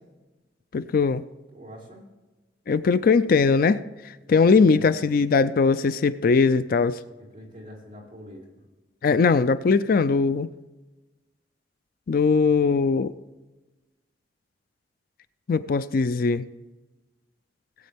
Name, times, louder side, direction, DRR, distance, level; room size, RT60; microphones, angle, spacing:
voice 1, 0.7-1.2 2.7-3.8 4.3-7.0 9.0-10.5 12.1-13.1 15.5-16.4, left 4 dB, 50° left, 14 dB, 0.4 m, -20 dB
voice 2, 1.5-2.0 4.3-4.9 7.2-8.5, equal, 30° right, -5 dB, 4.2 m, -44 dB
19.5 x 8.5 x 3.5 m, 1.2 s
head